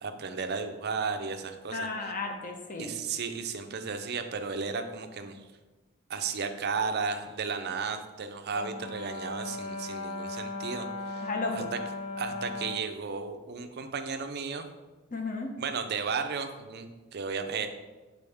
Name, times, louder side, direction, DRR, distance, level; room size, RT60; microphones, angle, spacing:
voice 1, 0.0-1.9 2.8-5.4 6.1-11.6 12.2-14.6 15.6-17.7, right 5 dB, 45° right, 7 dB, 0.5 m, -34 dB
voice 2, 1.7-2.9 11.2-11.7 15.1-15.5, left 3 dB, 35° left, 3 dB, 0.8 m, -34 dB
Brass instrument, 8.5-12.9, left 3 dB, 85° left, 0.6 m, -37 dB
6.9 x 4.1 x 3.4 m, 1.2 s
head